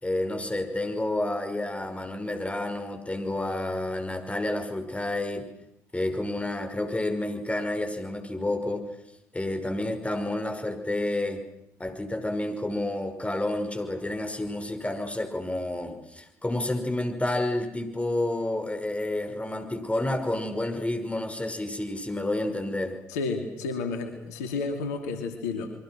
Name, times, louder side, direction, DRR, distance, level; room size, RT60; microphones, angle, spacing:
voice 1, 0.0-5.5 5.9-8.8 9.3-11.4 11.8-23.0, left 1 dB, 15° left, 6 dB, 5.6 m, -30 dB
voice 2, 23.1-25.7, left 4 dB, 80° left, 6 dB, 2.7 m, -31 dB
29.0 x 23.5 x 6.3 m, 0.79 s
hypercardioid pair, 50°, 8 cm